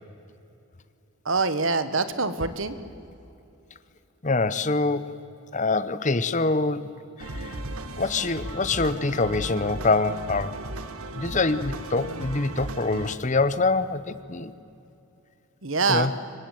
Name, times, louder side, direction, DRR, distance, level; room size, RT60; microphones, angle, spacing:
voice 1, 1.2-2.7 15.6-16.1, right 4 dB, 60° right, 12 dB, 1.6 m, -24 dB
voice 2, 4.2-5.2 5.5-6.9 7.2-7.6 8.0-10.6 11.1-14.5 15.9-16.1, left 3 dB, 35° left, 14 dB, 0.9 m, -25 dB
sound 1, 7.2-13.2, right 2 dB, 80° right, 2.0 m, -36 dB
26.5 x 24.0 x 9.3 m, 2.8 s
head